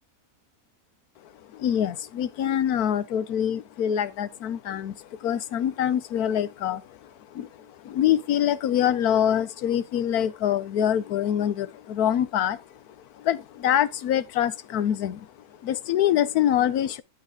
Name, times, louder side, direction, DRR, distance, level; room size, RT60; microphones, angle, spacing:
voice 1, 1.5-12.8 13.1-15.3 15.6-17.0, left 10 dB, 75° left, 1.2 m, -25 dB
11.5 x 5.7 x 3.7 m
omnidirectional pair, 1.6 m